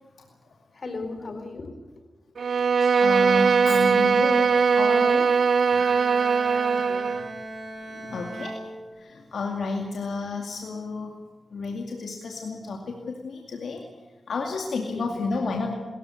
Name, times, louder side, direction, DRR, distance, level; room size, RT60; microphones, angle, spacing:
voice 1, 0.7-1.7 6.5-7.2 14.8-15.2, left 3 dB, 60° left, 7 dB, 4.0 m, -37 dB
Bowed string instrument, 2.4-7.3, right 5 dB, 75° right, 0.8 m, -20 dB
voice 2, 2.8-5.3 7.9-8.6 9.0-11.1 11.5-13.0 13.2-13.8 14.3-15.7, left 3 dB, 85° left, 1 dB, 2.3 m, -31 dB
Bowed string instrument 2, 5.7-9.5, right 1 dB, 45° right, 5.7 m, -39 dB
22.0 x 14.5 x 9.6 m, 1.2 s
cardioid pair, 60°, 0 cm